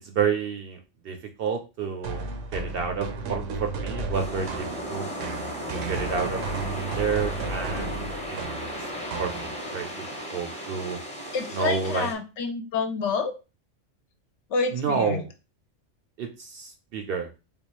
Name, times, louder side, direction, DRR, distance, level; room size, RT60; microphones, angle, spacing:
voice 1, 0.0-0.8 1.0-5.1 5.7-6.4 7.0-8.0 8.3-8.4 9.2-9.9 10.3-11.0 11.5-12.1 14.7-15.3 16.2-17.3, right 6 dB, 60° right, 5 dB, 0.6 m, -29 dB
sound 1, 2.0-9.9, right 3 dB, 80° right, 1.0 m, -34 dB
sound 2, 4.1-12.1, equal, 5° left, 0.7 m, -35 dB
voice 2, 11.3-13.3 14.5-15.2, left 4 dB, 70° left, 6 dB, 0.9 m, -28 dB
3.4 x 2.4 x 3.0 m, 0.30 s
omnidirectional pair, 1.3 m